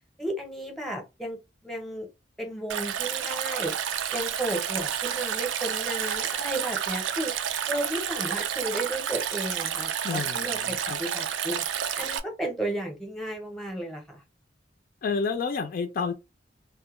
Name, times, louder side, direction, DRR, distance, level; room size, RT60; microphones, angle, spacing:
voice 1, 0.2-2.1 2.4-3.7 4.1-7.3 7.7-14.2, right 1 dB, ahead, 0.7 m, -33 dB
Stream, 2.7-12.2, right 9 dB, 85° right, 0.4 m, -30 dB
voice 2, 10.0-11.0 15.0-16.1, left 5 dB, 50° left, 0.3 m, -30 dB
2.2 x 2.1 x 2.9 m
head